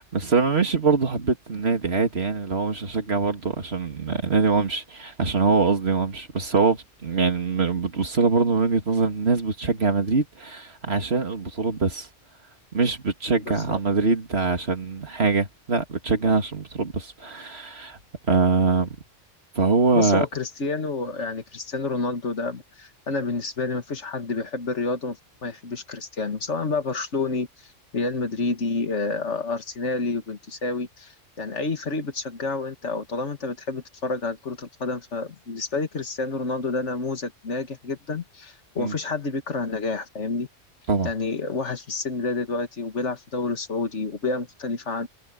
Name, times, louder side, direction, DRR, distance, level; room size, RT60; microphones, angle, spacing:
voice 1, 0.0-12.1 12.7-18.0 18.3-19.0 19.6-20.2 38.8-39.0 40.9-41.1, right 4 dB, 55° right, 2.6 m, -23 dB
voice 2, 13.5-13.8 19.9-27.5 27.9-40.5 41.0-45.1, left 3 dB, 70° left, 2.2 m, -29 dB
omnidirectional pair, 1.3 m